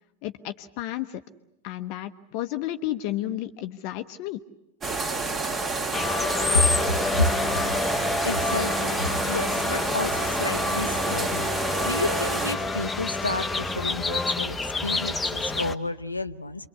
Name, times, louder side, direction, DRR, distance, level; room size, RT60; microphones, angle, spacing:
voice 1, 0.2-1.2 1.6-4.4, left 14 dB, 45° left, 8 dB, 1.0 m, -32 dB
sound 1, 4.8-12.5, right 3 dB, 25° right, 2.4 m, -29 dB
sound 2, 5.9-15.7, left 3 dB, 10° left, 1.2 m, -28 dB
voice 2, 6.5-7.3 8.2-16.7, left 2 dB, 80° left, 10 dB, 0.9 m, -30 dB
28.0 x 23.5 x 8.4 m, 0.89 s
figure-of-eight pair, 90°, 0 cm